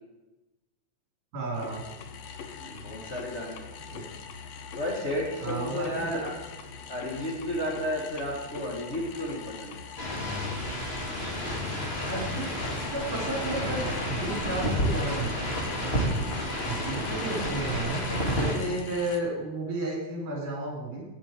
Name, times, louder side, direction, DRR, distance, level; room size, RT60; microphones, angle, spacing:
voice 1, 1.3-1.8 3.9-4.0 5.4-6.2 12.0-12.5 12.9-15.9 16.7-18.0 18.4-21.0, right 2 dB, 65° right, -2 dB, 4.7 m, -33 dB
sound 1, 1.5-19.2, left 6 dB, 80° left, 1.4 m, -43 dB
voice 2, 2.6-3.6 4.7-6.3 6.9-9.8, left 1 dB, 50° left, -3 dB, 0.8 m, -32 dB
sound 2, 10.0-18.6, equal, 25° left, 1.4 m, -30 dB
16.0 x 8.5 x 4.4 m, 1.1 s
omnidirectional pair, 4.1 m